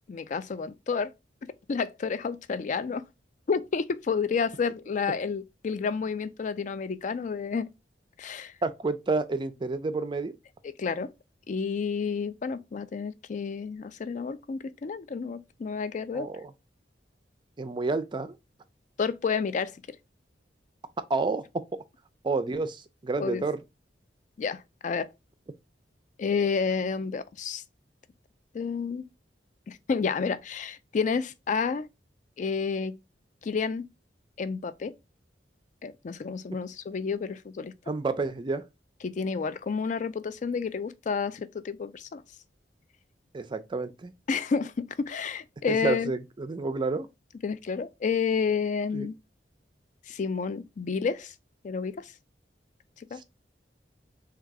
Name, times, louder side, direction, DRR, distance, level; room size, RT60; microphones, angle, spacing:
voice 1, 0.1-1.1 1.7-3.1 3.5-7.7 8.2-8.5 10.6-11.1 11.5-16.3 19.0-19.8 23.2-23.4 24.4-25.1 26.2-27.6 28.5-29.1 29.7-31.9 32.4-33.0 33.4-33.9 34.4-34.9 35.8-37.7 39.0-42.2 44.3-46.1 47.4-49.2 50.1-51.3 51.6-52.1 53.0-53.2, left 5 dB, 45° left, 0.4 m, -30 dB
voice 2, 8.6-10.3 16.1-16.5 17.6-18.3 21.1-21.4 22.2-23.6 37.9-38.6 43.3-44.1 45.7-47.1 48.9-49.1, right 3 dB, 25° right, 0.4 m, -29 dB
3.7 x 2.3 x 4.5 m
head